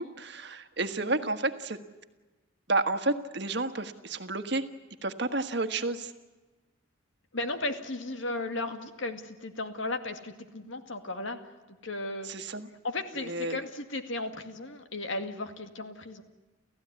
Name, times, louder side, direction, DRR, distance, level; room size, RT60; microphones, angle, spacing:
voice 1, 0.0-1.8 2.7-4.6 5.0-6.1 12.2-12.7 13.3-13.6, right 2 dB, 55° right, 9 dB, 1.5 m, -31 dB
voice 2, 7.3-11.4 11.8-12.3 12.8-16.2, left 2 dB, 70° left, 7 dB, 2.1 m, -35 dB
29.5 x 15.5 x 9.6 m, 1.2 s
head